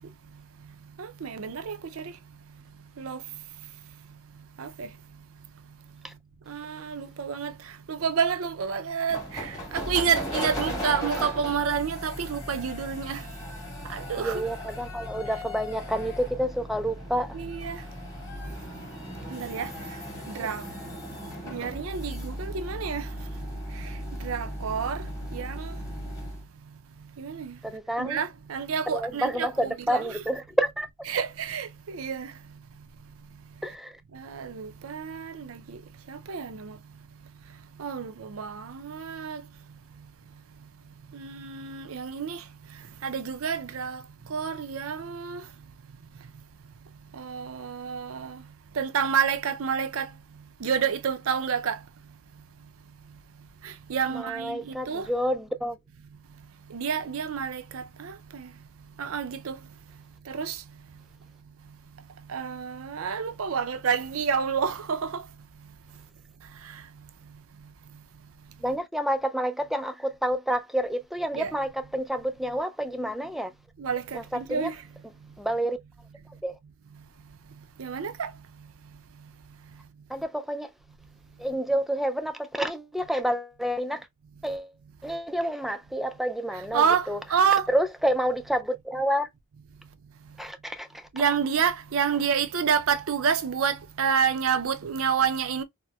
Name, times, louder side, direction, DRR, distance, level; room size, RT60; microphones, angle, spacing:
voice 1, 1.0-1.8 3.0-3.2 4.6-4.9 6.5-7.5 7.9-13.2 13.9-14.4 17.3-17.8 19.3-19.7 20.3-20.6 21.5-23.0 24.2-25.0 25.3-25.7 27.2-27.5 28.0-30.2 31.1-32.3 34.1-35.8 36.1-36.8 37.8-39.4 41.1-42.4 43.0-44.0 44.3-45.4 47.2-48.4 48.8-50.1 50.6-51.8 53.6-55.1 56.7-58.5 59.0-59.6 60.3-60.6 62.3-65.2 71.3-71.5 73.8-74.7 77.8-78.3 86.7-87.7 91.1-95.6, right 7 dB, 70° right, 0.5 m, -29 dB
sound 1, 9.1-26.4, equal, 15° left, 1.3 m, -37 dB
voice 2, 14.2-17.3 27.6-28.2 28.9-30.9 33.6-34.0 54.1-55.8 68.6-73.5 74.1-74.7 75.4-75.8 76.4-76.6 80.1-80.7 81.4-84.1 84.4-84.7 85.0-87.2 87.7-89.3 90.4-90.9, equal, ahead, 0.3 m, -29 dB
4.2 x 2.1 x 2.3 m
head